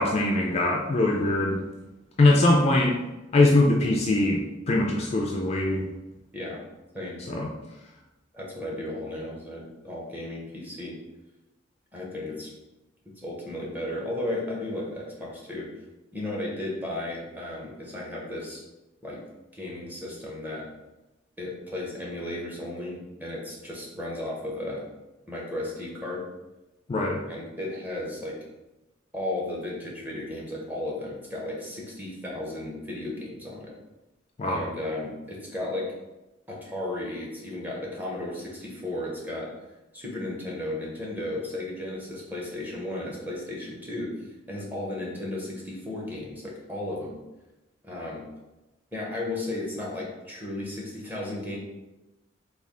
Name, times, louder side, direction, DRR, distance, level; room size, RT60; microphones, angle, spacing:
voice 1, 0.0-1.6 2.2-3.0 3.3-4.4 4.7-5.9 7.3-7.5 26.9-27.2 34.4-34.6, left 2 dB, 35° left, 0 dB, 0.3 m, -22 dB
voice 2, 8.3-11.0 11.9-12.5 13.2-15.7 16.1-18.6 19.0-19.2 19.5-20.6 21.4-24.8 25.3-26.3 27.3-28.4 29.1-33.7 34.5-35.9 36.5-39.5 39.9-47.2 47.8-48.2 48.9-51.6, left 1 dB, 10° right, -4 dB, 0.8 m, -34 dB
3.3 x 2.3 x 3.7 m, 1.0 s
head